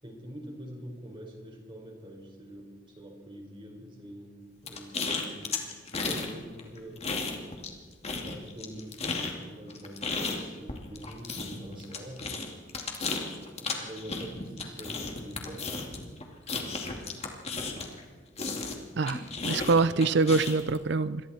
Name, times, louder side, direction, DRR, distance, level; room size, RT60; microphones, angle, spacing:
voice 1, 0.0-4.4 4.6-5.6 6.0-7.0 8.1-12.4 13.6-15.7, equal, 25° right, 1 dB, 4.7 m, -45 dB
sound 1, 4.7-6.3 6.6-7.8 8.0-18.0 18.4-20.8, left 4 dB, 35° left, 2.5 m, -34 dB
voice 2, 19.0-21.2, right 4 dB, 65° right, 15 dB, 0.5 m, -25 dB
28.0 x 23.0 x 4.4 m, 1.5 s
head